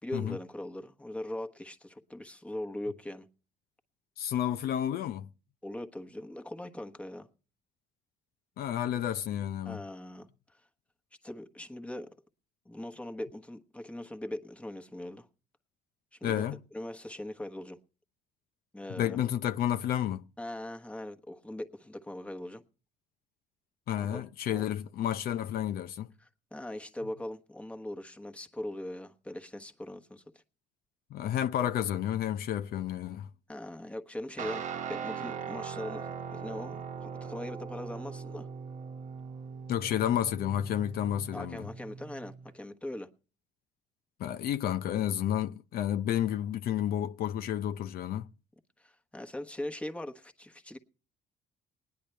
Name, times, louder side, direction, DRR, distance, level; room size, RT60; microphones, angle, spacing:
voice 1, 0.0-3.3 5.6-7.3 9.6-10.3 11.2-12.1 12.6-15.3 16.1-17.8 18.7-19.2 20.4-22.6 24.0-24.6 26.2-30.4 33.5-38.5 41.3-43.1 48.8-50.8, left 1 dB, 5° left, 1.2 m, -41 dB
voice 2, 4.2-5.3 8.6-9.8 16.2-16.6 18.9-20.2 23.9-26.1 31.1-33.3 39.7-41.7 44.2-48.3, left 11 dB, 65° left, 0.6 m, -31 dB
Guitar, 34.4-42.5, right 6 dB, 45° right, 1.1 m, -40 dB
19.5 x 10.5 x 3.3 m
cardioid pair, 110°, 17 cm